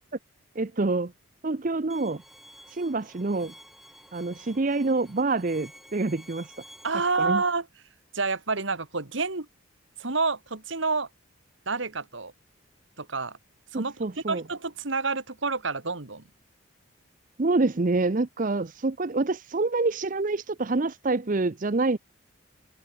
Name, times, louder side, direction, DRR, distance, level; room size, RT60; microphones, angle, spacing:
voice 1, 0.6-1.1 1.4-2.2 2.7-3.5 4.1-6.5 7.2-7.4 13.7-14.4 17.4-22.0, right 3 dB, 40° right, 0.6 m, -26 dB
Bowed string instrument, 1.9-6.9, equal, ahead, 6.9 m, -51 dB
voice 2, 6.8-7.7 8.1-9.5 10.0-11.1 11.7-12.3 13.0-13.4 13.7-13.9 14.3-16.2, right 4 dB, 70° right, 2.0 m, -28 dB
open air
head